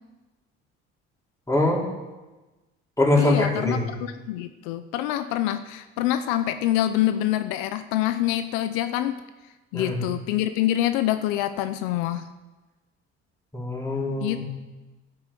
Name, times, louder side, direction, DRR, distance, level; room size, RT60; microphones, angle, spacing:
voice 1, 1.5-1.8 3.0-3.9 9.7-10.0 13.5-14.4, left 2 dB, 10° left, -3 dB, 4.6 m, -23 dB
voice 2, 3.2-9.1 9.7-12.3 14.2-14.4, left 13 dB, 85° left, 11 dB, 0.7 m, -26 dB
12.0 x 9.7 x 7.5 m, 1.2 s
supercardioid pair, 70°, 31 cm